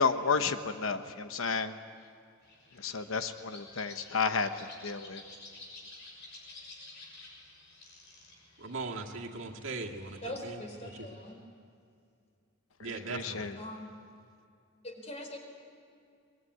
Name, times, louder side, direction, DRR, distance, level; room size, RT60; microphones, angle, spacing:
voice 1, 0.0-1.7 2.8-5.2 12.8-13.5, left 5 dB, 75° left, 9 dB, 1.0 m, -31 dB
sound 1, 2.4-11.3, left 2 dB, 55° left, 6.6 m, -52 dB
voice 2, 8.6-10.6 11.0-11.1 12.8-13.5, right 3 dB, 65° right, 1 dB, 2.0 m, -39 dB
voice 3, 10.2-11.4 13.6-14.0 14.8-15.4, left 1 dB, 35° left, 3 dB, 4.2 m, -42 dB
24.0 x 20.5 x 9.6 m, 2.4 s
head